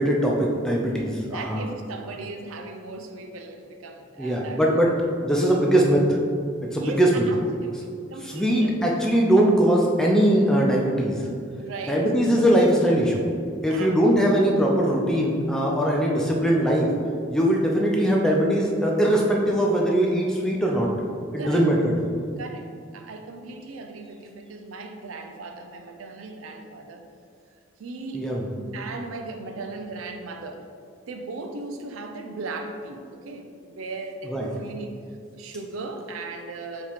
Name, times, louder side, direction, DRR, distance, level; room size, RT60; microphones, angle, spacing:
voice 1, 0.0-1.7 4.2-4.9 5.2-6.2 6.6-7.2 8.2-11.3 11.9-13.2 13.6-16.9 17.3-20.9 21.3-21.9 28.1-28.5 34.2-34.5, right 1 dB, 5° left, -2 dB, 0.4 m, -21 dB
voice 2, 1.3-5.0 6.8-8.9 11.6-12.0 13.7-14.0 21.4-21.6 22.4-27.0 27.8-28.3 28.7-30.7 31.1-35.0 35.3-36.9, right 3 dB, 85° right, 5 dB, 0.4 m, -37 dB
4.6 x 3.0 x 3.5 m, 2.3 s
head